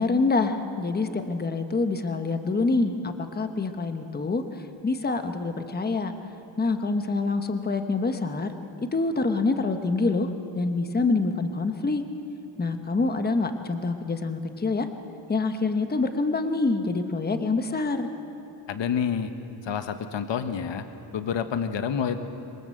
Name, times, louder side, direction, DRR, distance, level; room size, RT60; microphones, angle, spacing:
voice 1, 0.0-6.1 6.6-8.5 8.9-12.0 12.6-14.9 15.3-18.1, left 3 dB, 20° left, 7 dB, 1.1 m, -26 dB
voice 2, 18.7-19.3 19.6-20.8 21.1-22.2, left 7 dB, 70° left, 8 dB, 1.3 m, -28 dB
26.5 x 23.0 x 7.8 m, 3.0 s
wide cardioid pair, 175°, 45 cm